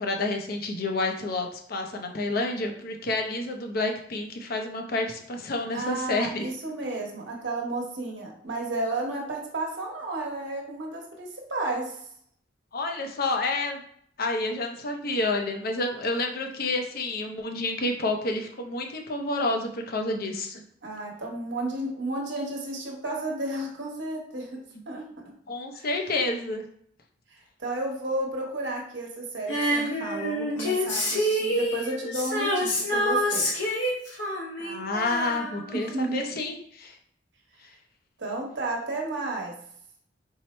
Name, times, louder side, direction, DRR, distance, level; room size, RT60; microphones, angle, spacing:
voice 1, 0.0-6.5 12.7-13.8 14.2-20.6 25.5-26.6 34.6-37.0, left 2 dB, 55° left, 3 dB, 0.6 m, -29 dB
voice 2, 5.7-12.0 20.8-24.6 24.9-25.0 25.7-25.9 27.3-33.5 35.7-36.4 38.2-39.5, right 2 dB, 70° right, -1 dB, 1.1 m, -32 dB
Female singing, 29.5-36.1 36.4-36.5, equal, 85° left, 1.1 m, -27 dB
4.6 x 2.0 x 4.2 m, 0.66 s
head